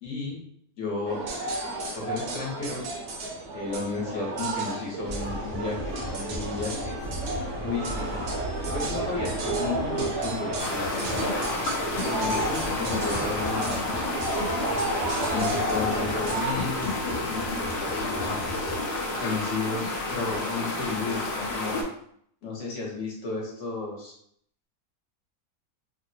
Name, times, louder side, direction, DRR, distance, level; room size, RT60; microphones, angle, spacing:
voice 1, 0.0-0.4 0.8-1.2 1.9-2.8 3.5-7.0 7.6-8.2 8.7-11.2 12.1-14.0 15.2-18.6 19.2-21.9 22.4-24.1, left 4 dB, 55° left, -3 dB, 1.2 m, -33 dB
sound 1, 1.1-16.5, right 2 dB, 75° right, 1.1 m, -32 dB
sound 2, 5.1-18.8, equal, 35° left, 0.6 m, -36 dB
sound 3, 10.6-21.8, left 2 dB, 75° left, 0.5 m, -30 dB
3.2 x 2.1 x 2.7 m, 0.67 s
omnidirectional pair, 1.6 m